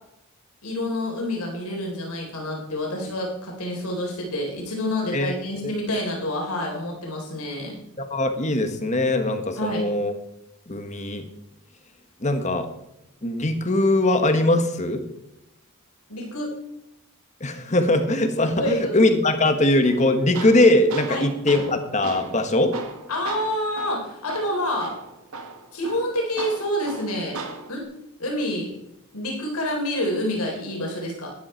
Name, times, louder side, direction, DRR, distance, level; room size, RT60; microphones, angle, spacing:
voice 1, 0.6-7.8 9.6-9.8 16.1-16.5 18.6-19.0 21.1-21.2 23.1-25.0 25.7-27.4 27.7-27.9 28.2-28.8 29.1-31.3, left 1 dB, 85° left, 0 dB, 4.0 m, -28 dB
voice 2, 8.0-10.1 10.7-11.3 12.2-12.7 13.2-15.0 17.4-22.8, left 1 dB, 30° left, 8 dB, 1.3 m, -21 dB
Tools, 19.8-27.8, right 3 dB, 80° right, 1.9 m, -37 dB
12.5 x 11.0 x 4.5 m, 0.86 s
head